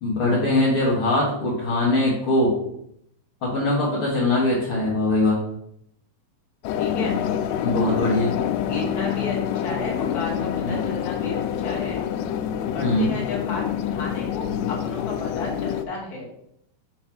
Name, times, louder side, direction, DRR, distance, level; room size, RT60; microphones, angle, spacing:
voice 1, 0.0-2.5 3.4-5.4 7.6-8.3 10.6-10.8 12.8-13.1, left 2 dB, 60° left, -6 dB, 1.4 m, -21 dB
sound 1, 6.6-15.9, left 9 dB, 85° left, 2.6 m, -27 dB
voice 2, 6.8-7.1 8.6-12.0 12.7-16.3, left 2 dB, 35° left, -4 dB, 1.6 m, -33 dB
7.2 x 3.3 x 5.9 m, 0.74 s
omnidirectional pair, 4.5 m